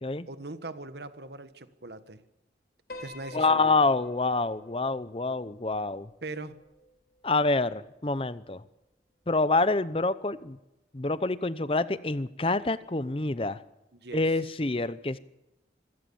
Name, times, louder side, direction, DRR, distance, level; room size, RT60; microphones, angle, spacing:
voice 1, 0.3-2.2 3.0-3.8 6.2-6.6 13.9-14.2, right 2 dB, 70° right, 12 dB, 1.4 m, -40 dB
Piano, 2.9-7.3, left 1 dB, 55° left, 3.4 m, -48 dB
voice 2, 3.3-6.1 7.2-8.6 9.3-10.6 10.9-13.6 14.1-15.2, left 3 dB, 30° left, 16 dB, 0.7 m, -27 dB
25.0 x 17.0 x 7.1 m, 0.94 s
head